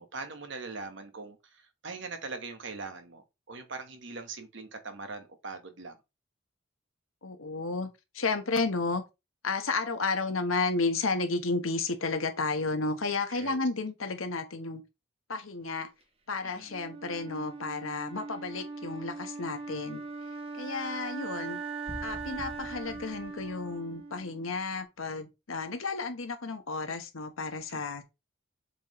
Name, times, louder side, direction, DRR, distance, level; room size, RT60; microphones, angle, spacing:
voice 1, 0.0-6.0 13.3-13.6 16.4-16.7 27.7-27.8, right 3 dB, 65° right, 1.4 m, -42 dB
voice 2, 7.2-9.0 9.4-14.8 15.3-15.9 16.3-20.0 20.6-21.6 22.0-28.0, left 3 dB, 85° left, 1.2 m, -32 dB
Wind instrument woodwind instrument, 16.7-24.7, right 4 dB, 30° right, 0.9 m, -40 dB
sound 1, 21.9-24.0, left 1 dB, 35° left, 1.3 m, -45 dB
7.4 x 4.3 x 3.1 m
head